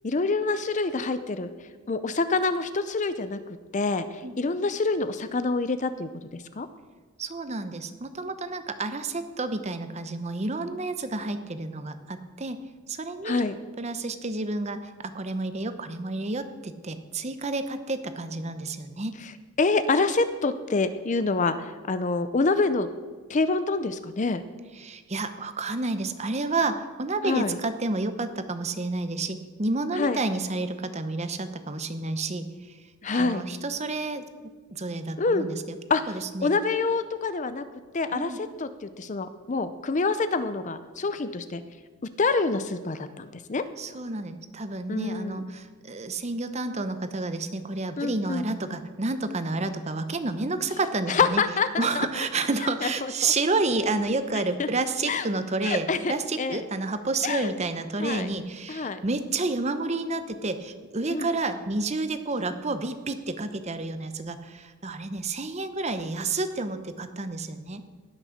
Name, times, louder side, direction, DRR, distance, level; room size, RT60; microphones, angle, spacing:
voice 1, 0.0-1.5 1.9-3.4 3.7-6.7 13.2-13.6 19.2-19.3 19.6-22.9 23.3-24.4 27.2-27.6 29.9-30.2 33.0-33.4 35.2-35.5 35.9-37.7 37.9-41.6 42.0-43.7 44.9-45.4 48.0-48.5 51.1-52.1 52.8-53.3 54.6-54.7 55.1-55.3 55.6-56.6 57.2-57.6 58.0-58.3 58.7-59.0 61.1-61.3, left 3 dB, 35° left, 12 dB, 0.5 m, -26 dB
voice 2, 7.2-12.6 12.9-13.4 13.8-19.1 24.8-32.8 33.1-35.8 36.1-36.5 38.1-38.4 43.8-51.4 51.8-67.8, right 3 dB, 30° right, 10 dB, 0.8 m, -30 dB
18.0 x 6.4 x 6.5 m, 1.5 s
head